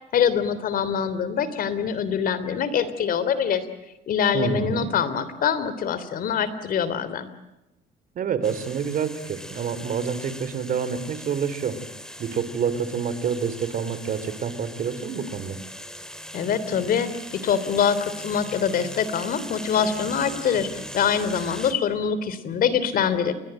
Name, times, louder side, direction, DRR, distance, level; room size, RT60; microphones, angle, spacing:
voice 1, 0.1-3.7 4.1-7.3 16.3-17.1 17.4-23.3, left 7 dB, 60° left, 14 dB, 3.3 m, -24 dB
voice 2, 4.3-4.9 8.2-11.8 12.2-15.6, right 6 dB, 55° right, 13 dB, 3.7 m, -27 dB
sound 1, 8.4-21.7, equal, 5° left, 3.2 m, -40 dB
29.0 x 22.5 x 7.8 m, 0.95 s
cardioid pair, 110°, 17 cm